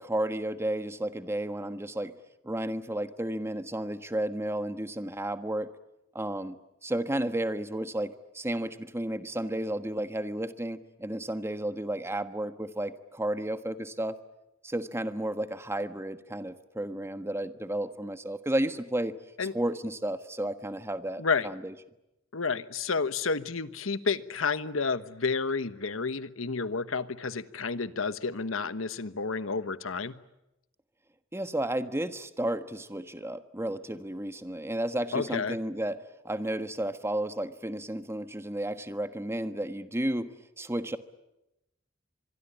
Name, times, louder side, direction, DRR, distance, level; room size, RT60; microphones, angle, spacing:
voice 1, 0.0-2.1 2.4-5.7 6.1-14.2 14.6-19.1 19.5-21.7 31.3-36.0 36.2-40.3 40.6-41.0, right 1 dB, 15° right, 10 dB, 1.3 m, -32 dB
voice 2, 21.2-21.5 22.3-30.2 35.1-35.6, left 4 dB, 75° left, 13 dB, 1.2 m, -30 dB
25.0 x 23.0 x 10.0 m, 0.91 s
head